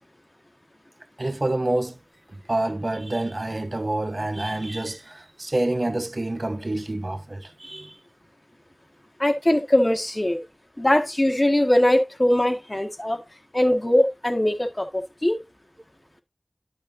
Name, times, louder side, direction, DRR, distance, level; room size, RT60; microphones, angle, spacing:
voice 1, 1.2-2.0 2.5-7.9, right 1 dB, 50° right, 0.7 m, -27 dB
voice 2, 9.2-10.4 10.8-13.2 13.5-15.4, left 1 dB, 30° left, 1.7 m, -21 dB
11.0 x 5.5 x 2.7 m
wide cardioid pair, 50°, 0 cm